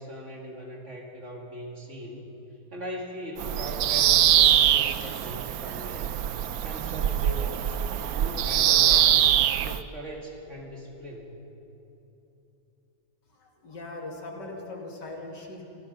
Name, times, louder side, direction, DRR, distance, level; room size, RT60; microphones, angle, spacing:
voice 1, 0.0-2.3 2.7-6.2 6.6-9.3 9.6-11.4, equal, 40° right, -1 dB, 2.8 m, -40 dB
Bird vocalization bird call bird song, 3.4-9.8, right 11 dB, 65° right, 1.0 m, -23 dB
voice 2, 13.4-15.6, left 2 dB, 80° left, 0 dB, 3.1 m, -40 dB
26.5 x 18.0 x 5.6 m, 2.9 s
omnidirectional pair, 1.9 m